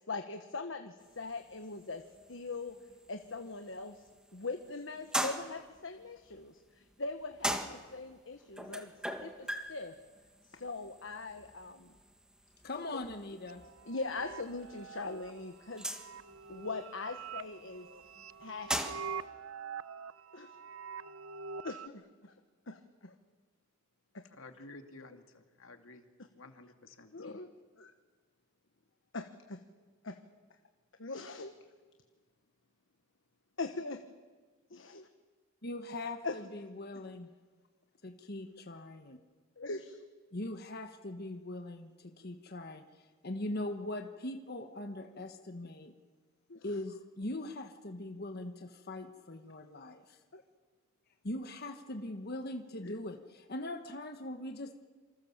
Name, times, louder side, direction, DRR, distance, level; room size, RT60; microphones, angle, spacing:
voice 1, 0.1-2.0 2.3-2.8 3.1-8.9 9.2-9.9 10.5-12.0 13.0-13.2 13.8-15.9 16.5-17.9 18.4-19.1 20.3-20.5 21.6-22.3 22.7-23.1 24.1-24.3 27.1-27.5 27.8-27.9 29.1-29.6 30.0-30.2 31.0-31.5 33.6-34.0 34.7-35.0 36.2-36.4 39.6-40.1 46.5-46.6 50.3-50.4 52.8-53.0, left 3 dB, 65° left, 6 dB, 1.3 m, -41 dB
sound 1, 1.0-19.2, equal, 5° right, 1.8 m, -42 dB
voice 2, 12.6-13.6 35.6-37.3 38.0-39.2 40.3-45.9 46.6-50.2 51.2-54.8, left 1 dB, 50° left, 6 dB, 1.4 m, -41 dB
sound 2, 13.5-21.9, right 6 dB, 90° right, 0.8 m, -45 dB
voice 3, 24.2-26.1 26.3-27.3, left 2 dB, 80° left, 6 dB, 2.3 m, -53 dB
27.5 x 25.5 x 7.4 m, 1.4 s
head